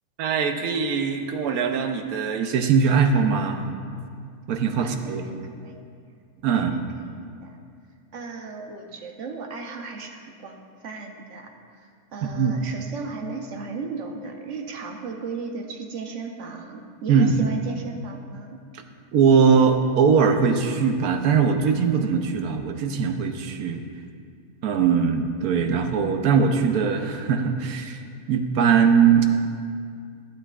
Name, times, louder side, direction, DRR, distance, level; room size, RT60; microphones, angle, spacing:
voice 1, 0.2-3.6 4.5-5.2 6.4-6.7 12.2-12.6 17.1-17.6 19.1-23.8 24.6-28.0 28.3-29.3, right 6 dB, 80° right, 5 dB, 1.2 m, -21 dB
voice 2, 4.8-5.8 6.5-6.8 7.2-7.6 8.1-18.6, right 4 dB, 60° right, 3 dB, 1.0 m, -36 dB
11.5 x 11.0 x 2.4 m, 2.2 s
omnidirectional pair, 1.5 m